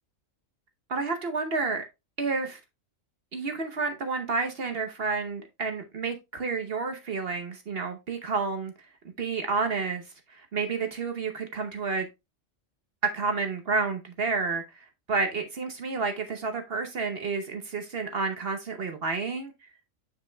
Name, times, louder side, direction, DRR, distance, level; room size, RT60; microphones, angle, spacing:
voice 1, 0.9-1.8 2.2-2.6 3.3-8.7 9.2-10.0 10.3-12.1 13.1-14.6 15.1-19.5, right 4 dB, 50° right, 1.0 m, -30 dB
7.3 x 6.4 x 2.2 m
omnidirectional pair, 1.3 m